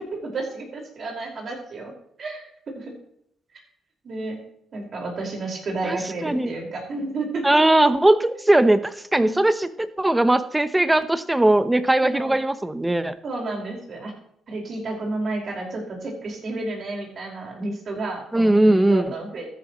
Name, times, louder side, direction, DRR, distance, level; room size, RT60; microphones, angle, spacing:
voice 1, 0.1-1.9 2.2-2.5 2.7-2.9 4.0-4.4 4.7-7.6 9.2-9.4 12.0-12.4 13.2-14.1 14.5-19.5, right 2 dB, 50° right, 0 dB, 5.2 m, -31 dB
voice 2, 6.2-6.5 7.4-13.1 18.3-19.1, right 1 dB, 10° right, 12 dB, 0.9 m, -19 dB
13.5 x 10.5 x 3.1 m, 0.72 s
cardioid pair, 90°, 0 cm